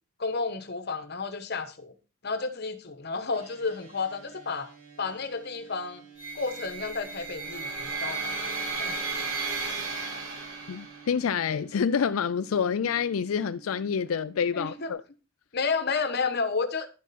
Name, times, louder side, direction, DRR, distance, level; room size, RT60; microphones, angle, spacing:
voice 1, 0.2-1.9 2.2-4.7 5.0-6.1 6.3-8.5 8.8-9.0 14.5-15.0 15.5-16.9, left 4 dB, 50° left, 1.1 m, -31 dB
sound 1, 3.3-14.9, right 8 dB, 45° right, 3.9 m, -52 dB
sound 2, 6.2-11.2, right 4 dB, 80° right, 4.1 m, -34 dB
voice 2, 10.7-15.0, left 6 dB, 90° left, 0.4 m, -27 dB
10.5 x 7.2 x 4.2 m
head